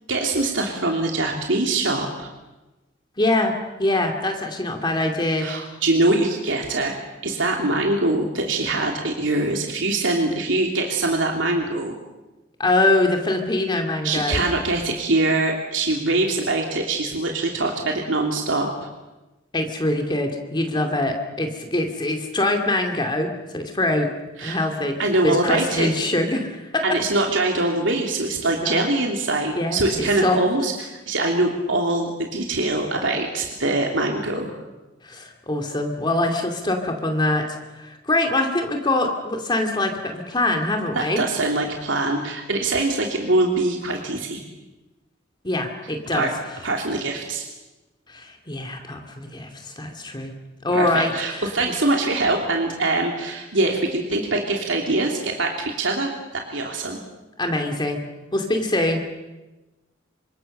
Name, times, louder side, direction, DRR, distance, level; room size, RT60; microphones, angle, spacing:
voice 1, 0.1-2.3 5.4-6.9 7.2-12.0 14.0-18.7 24.4-24.6 25.0-25.9 26.8-34.6 40.9-44.4 46.1-46.3 46.6-47.4 50.7-57.0, right 2 dB, 80° right, 1 dB, 3.0 m, -23 dB
voice 2, 3.2-3.5 3.8-5.5 12.6-14.4 19.5-24.1 24.4-25.0 25.2-26.8 28.6-28.9 29.5-30.4 35.0-41.2 45.4-46.3 48.1-50.3 50.6-51.5 57.4-58.0 58.3-59.0, left 2 dB, 25° left, 4 dB, 2.5 m, -23 dB
28.0 x 26.0 x 6.8 m, 1.1 s
head